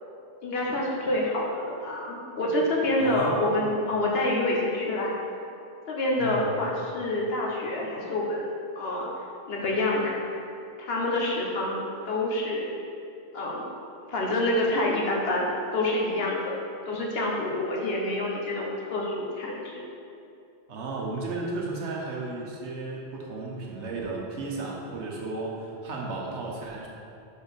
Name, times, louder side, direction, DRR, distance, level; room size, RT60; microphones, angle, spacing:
voice 1, 0.4-5.1 5.9-8.5 8.8-9.1 9.5-10.1 10.8-12.7 13.3-13.6 14.1-15.4 15.7-16.5 16.8-19.8, left 1 dB, 65° left, -2 dB, 1.1 m, -27 dB
voice 2, 3.0-3.4 6.2-6.5 20.7-26.9, right 3 dB, 85° right, -2 dB, 1.2 m, -34 dB
4.7 x 4.5 x 5.1 m, 2.6 s
omnidirectional pair, 1.1 m